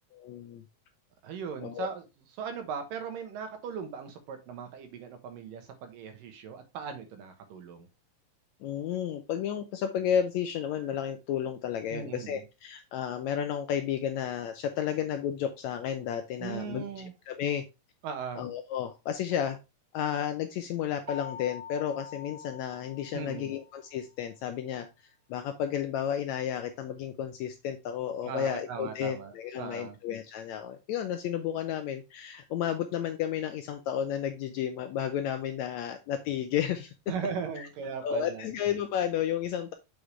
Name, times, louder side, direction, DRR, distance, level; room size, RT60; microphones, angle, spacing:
voice 1, 0.1-0.6 1.6-1.9 8.6-17.7 18.4-19.6 19.9-24.9 25.3-36.9 37.6-37.7 38.0-39.7, left 9 dB, 80° left, 8 dB, 1.6 m, -32 dB
voice 2, 1.2-2.0 2.4-7.9 11.9-12.4 16.4-17.1 18.0-18.5 23.1-23.5 28.2-30.0 37.1-38.5, right 6 dB, 85° right, 6 dB, 2.9 m, -38 dB
sound 1, 21.1-23.8, left 6 dB, 30° right, 1.7 m, -44 dB
7.9 x 5.0 x 3.2 m, 0.25 s
omnidirectional pair, 3.8 m